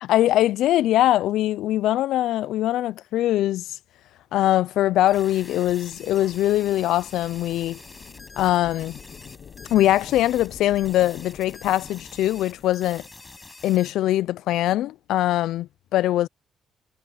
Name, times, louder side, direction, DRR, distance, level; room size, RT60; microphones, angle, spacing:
voice 1, 0.0-3.7 4.3-7.8 8.4-9.0 9.7-13.0 13.6-16.3, left 14 dB, 85° left, 0.4 m, -22 dB
sound 1, 4.7-12.8, left 7 dB, 55° left, 1.0 m, -47 dB
sound 2, 5.1-13.9, left 3 dB, 20° left, 7.3 m, -46 dB
cardioid pair, 90°, 0 cm